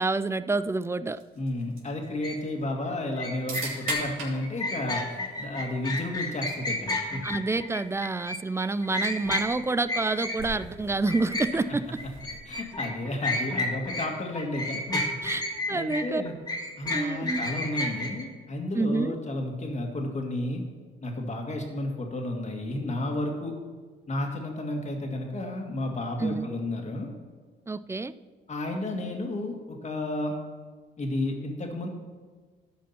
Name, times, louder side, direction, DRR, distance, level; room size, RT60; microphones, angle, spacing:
voice 1, 0.0-1.2 7.2-11.9 15.2-15.4 15.7-16.2 16.9-17.4 18.8-19.2 26.2-26.5 27.7-28.1, right 3 dB, 15° right, 14 dB, 0.3 m, -28 dB
sound 1, 1.1-13.0, right 3 dB, 85° right, 3.0 m, -44 dB
voice 2, 1.4-7.2 12.5-15.1 15.7-16.3 16.8-20.6 21.0-23.6 24.1-27.1 28.5-30.4 31.0-31.9, left 1 dB, 35° left, 2 dB, 2.0 m, -32 dB
sound 2, 2.2-2.4 3.2-10.7 11.1-14.1 14.3-18.2, left 2 dB, 20° left, 1.7 m, -31 dB
13.0 x 5.1 x 5.7 m, 1.5 s
cardioid pair, 90°, 20 cm